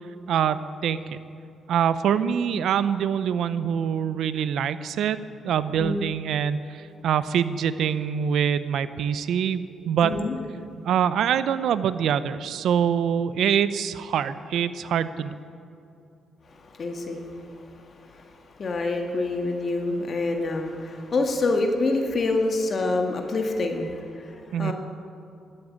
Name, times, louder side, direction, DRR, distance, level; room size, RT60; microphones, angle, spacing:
voice 1, 0.3-1.2 1.7-5.2 5.4-10.1 10.8-15.4 24.5-24.7, right 8 dB, 75° right, 14 dB, 0.6 m, -24 dB
voice 2, 5.7-6.1 10.0-10.3 16.5-24.7, left 2 dB, 50° left, 3 dB, 1.7 m, -27 dB
12.5 x 12.0 x 8.7 m, 2.7 s
supercardioid pair, 60°, 0 cm